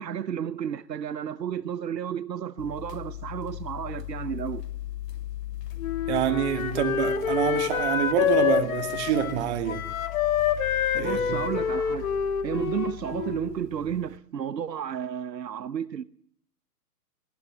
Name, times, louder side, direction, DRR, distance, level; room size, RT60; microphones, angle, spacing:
voice 1, 0.0-4.6 10.9-12.1 12.4-16.0, right 9 dB, 90° right, 0.9 m, -32 dB
sound 1, 2.6-14.2, left 13 dB, 75° left, 1.6 m, -39 dB
Wind instrument woodwind instrument, 5.8-13.5, left 8 dB, 55° left, 2.1 m, -27 dB
voice 2, 6.1-9.9 11.0-11.4, right 11 dB, 40° right, 2.2 m, -27 dB
19.0 x 18.5 x 7.7 m
hypercardioid pair, 135°, 49 cm